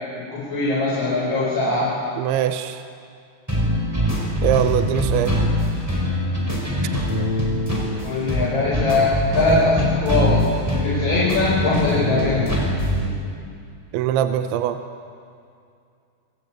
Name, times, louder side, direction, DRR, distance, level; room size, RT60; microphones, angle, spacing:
voice 1, 0.2-2.0 8.0-12.6, left 3 dB, 30° left, -5 dB, 5.2 m, -21 dB
voice 2, 2.2-2.8 4.4-5.4 13.9-14.8, right 10 dB, 80° right, 8 dB, 3.1 m, -22 dB
sound 1, 3.5-13.1, equal, 5° right, 5.1 m, -23 dB
27.0 x 24.0 x 8.8 m, 2.4 s
omnidirectional pair, 5.7 m